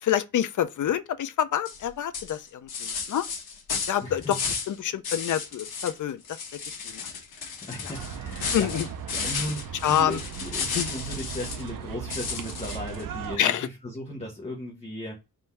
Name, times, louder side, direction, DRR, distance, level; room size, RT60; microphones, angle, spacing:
voice 1, 0.0-3.3 3.9-4.4 4.7-7.1 7.8-7.9 8.5-8.9 9.8-10.2 10.7-10.9 13.4-13.7, left 10 dB, 55° left, 0.4 m, -27 dB
sound 1, 1.6-1.8 2.1-4.7 5.0-6.0 6.2-11.7 12.1-13.0, left 5 dB, 90° left, 1.0 m, -33 dB
voice 2, 4.0-4.4 7.6-8.8 9.1-15.1, left 1 dB, 20° left, 0.8 m, -36 dB
sound 2, 7.9-13.4, right 7 dB, 65° right, 0.5 m, -37 dB
3.7 x 2.6 x 4.2 m
wide cardioid pair, 155°, 36 cm